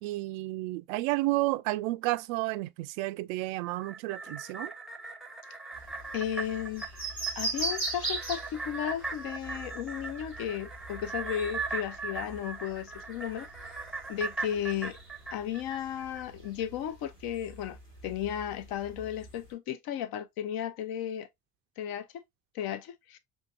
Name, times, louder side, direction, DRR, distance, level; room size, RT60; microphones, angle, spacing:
voice 1, 0.0-4.7, right 19 dB, 60° right, 0.5 m, -31 dB
sound 1, 3.7-16.2 16.6-16.7, right 4 dB, ahead, 0.7 m, -40 dB
sound 2, 5.7-19.5, right 3 dB, 85° left, 1.5 m, -41 dB
voice 2, 6.1-6.9 7.4-13.5 14.1-15.0 15.3-17.8 18.0-21.3 21.8-22.1 22.5-23.2, left 10 dB, 50° left, 0.7 m, -34 dB
6.2 x 2.7 x 2.4 m
figure-of-eight pair, 50°, 48 cm